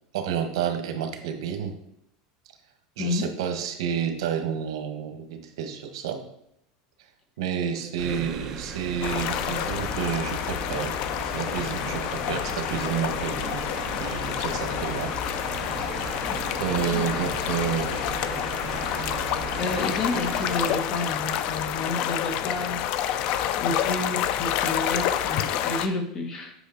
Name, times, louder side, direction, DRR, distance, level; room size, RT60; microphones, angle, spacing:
voice 1, 0.1-1.8 3.0-6.2 7.4-10.9 11.2-13.6 13.9-15.1 15.8-16.2 16.6-18.0, right 8 dB, 85° right, 6 dB, 1.2 m, -30 dB
sound 1, 8.0-20.8, right 5 dB, 20° right, 0.8 m, -37 dB
sound 2, 9.0-25.9, left 10 dB, 40° left, 0.4 m, -28 dB
voice 2, 16.7-17.0 19.6-23.1 23.6-26.5, left 2 dB, 25° left, 5 dB, 1.0 m, -31 dB
8.1 x 5.8 x 4.0 m, 0.77 s
supercardioid pair, 175°, 3 cm